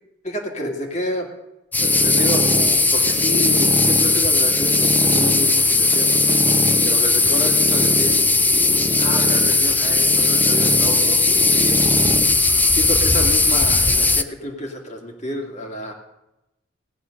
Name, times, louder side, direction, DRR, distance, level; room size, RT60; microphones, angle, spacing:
voice 1, 0.2-1.3 1.8-6.2 6.8-8.1 9.0-11.8 12.7-15.9, equal, 40° left, 2 dB, 2.3 m, -29 dB
sound 1, 1.7-14.2, left 3 dB, 10° left, 0.4 m, -17 dB
sound 2, 1.8-12.3, equal, 15° right, 1.1 m, -27 dB
17.5 x 10.0 x 6.5 m, 0.95 s
head